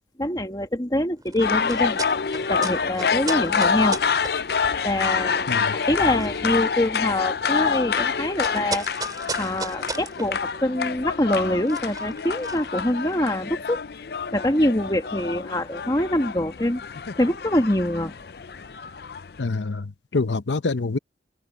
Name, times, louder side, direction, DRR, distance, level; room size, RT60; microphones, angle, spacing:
voice 1, 0.2-2.0 2.5-4.0 4.8-8.9 9.4-13.8 14.3-16.8 17.2-18.1, left 1 dB, 20° left, 1.5 m, -24 dB
sound 1, 1.2-13.3, right 4 dB, 20° right, 2.6 m, -38 dB
sound 2, 1.4-19.4, left 6 dB, 60° left, 0.5 m, -27 dB
voice 2, 5.5-5.8 19.4-21.0, left 3 dB, 90° left, 0.8 m, -26 dB
head